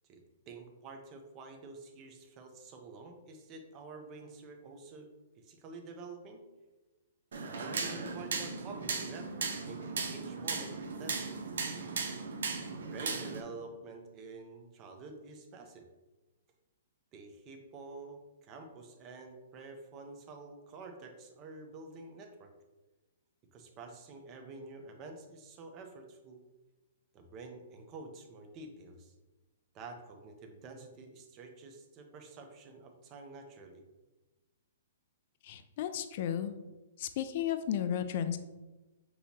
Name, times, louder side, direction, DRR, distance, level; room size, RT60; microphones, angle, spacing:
voice 1, 0.1-5.1 5.3-6.4 7.4-11.4 12.8-15.9 17.1-22.5 23.5-26.4 27.1-29.1 29.7-33.8, right 3 dB, 30° right, 4 dB, 0.6 m, -48 dB
sound 1, 7.3-13.4, right 4 dB, 80° right, 0.7 m, -37 dB
voice 2, 35.4-36.5 37.0-38.4, left 9 dB, 50° left, 9 dB, 0.3 m, -33 dB
6.2 x 2.9 x 2.8 m, 1.1 s
hypercardioid pair, 150°, 0 cm